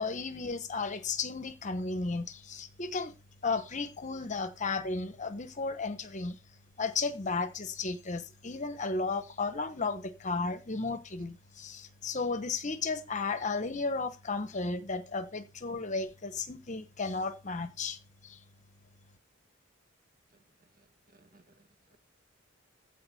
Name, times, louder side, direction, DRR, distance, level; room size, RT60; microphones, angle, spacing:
voice 1, 0.0-3.1 3.4-6.4 6.8-18.0 18.2-18.4, left 4 dB, 35° left, 0.9 m, -34 dB
voice 2, 21.1-22.0, right 2 dB, 40° right, 1.7 m, -63 dB
15.0 x 5.1 x 4.1 m
head